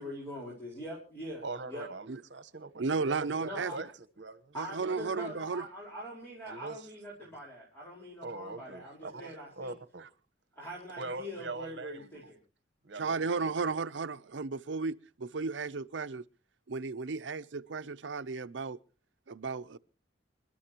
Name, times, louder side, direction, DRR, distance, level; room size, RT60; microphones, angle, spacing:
voice 1, 0.0-1.9 3.4-3.8 4.5-9.7 10.6-12.4, equal, 15° left, 4.6 m, -43 dB
voice 2, 1.4-3.9 4.2-4.5 4.8-5.3 6.4-6.8 8.2-10.1 11.0-12.0 12.8-13.7, right 3 dB, 70° right, 1.1 m, -42 dB
voice 3, 2.8-3.7 4.6-5.6 13.0-16.2 16.7-18.8 19.3-19.8, right 4 dB, 90° right, 0.6 m, -34 dB
28.0 x 12.0 x 2.9 m
head